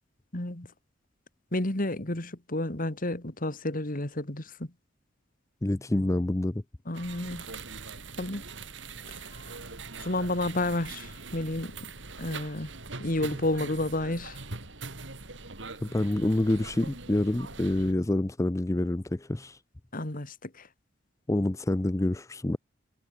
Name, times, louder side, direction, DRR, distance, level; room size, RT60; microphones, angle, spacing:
voice 1, 0.3-0.7 1.5-4.7 6.9-7.5 8.2-8.4 9.1-9.2 10.0-11.8 12.2-12.7 13.0-14.4 19.9-20.7, left 1 dB, 45° left, 2.7 m, -31 dB
voice 2, 5.6-6.6 15.8-19.6 21.3-22.6, left 1 dB, 15° left, 0.5 m, -27 dB
sound 1, 6.9-17.9, right 3 dB, 70° right, 4.0 m, -42 dB
head